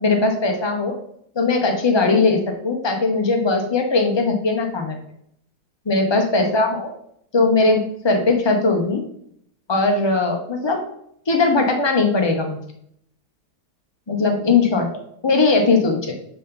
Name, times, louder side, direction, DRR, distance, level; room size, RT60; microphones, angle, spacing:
voice 1, 0.0-0.9 1.4-5.0 5.9-6.9 7.3-9.0 9.7-10.8 11.3-12.6 14.1-14.9 15.2-16.1, left 3 dB, 35° left, 3 dB, 0.4 m, -19 dB
6.7 x 4.1 x 3.8 m, 0.68 s
omnidirectional pair, 1.9 m